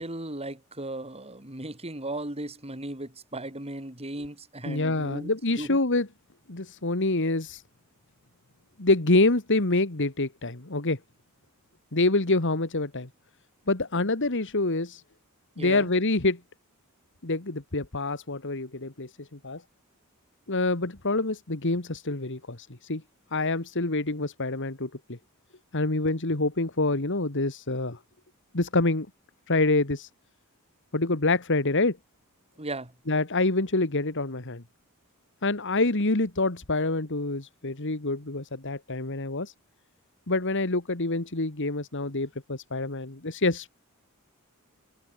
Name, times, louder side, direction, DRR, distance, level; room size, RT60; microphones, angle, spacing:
voice 1, 0.0-5.3 5.6-5.8 15.6-15.9 32.6-32.9, right 1 dB, 25° right, 5.3 m, -36 dB
voice 2, 4.7-6.1 6.5-7.6 8.8-11.0 11.9-13.1 13.7-15.0 15.6-16.4 17.2-19.6 20.5-23.0 23.3-25.2 25.7-28.0 28.5-29.1 29.5-30.1 30.9-32.0 33.1-34.6 35.4-39.5 40.3-43.7, left 2 dB, 55° left, 2.1 m, -26 dB
head